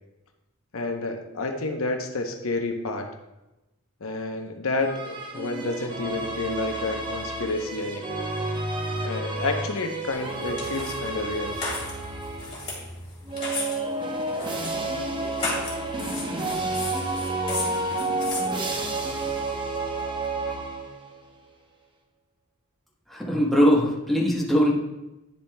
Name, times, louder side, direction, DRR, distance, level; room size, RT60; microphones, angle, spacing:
voice 1, 0.7-3.2 4.0-8.3 9.0-11.6, left 2 dB, 75° left, 4 dB, 0.8 m, -30 dB
sound 1, 4.8-12.7 13.3-21.2, right 2 dB, 20° right, 0.8 m, -30 dB
sound 2, 10.1-19.3, left 2 dB, 25° left, 2.4 m, -36 dB
voice 2, 23.1-24.7, equal, ahead, -4 dB, 1.1 m, -21 dB
9.9 x 7.1 x 2.2 m, 0.99 s
head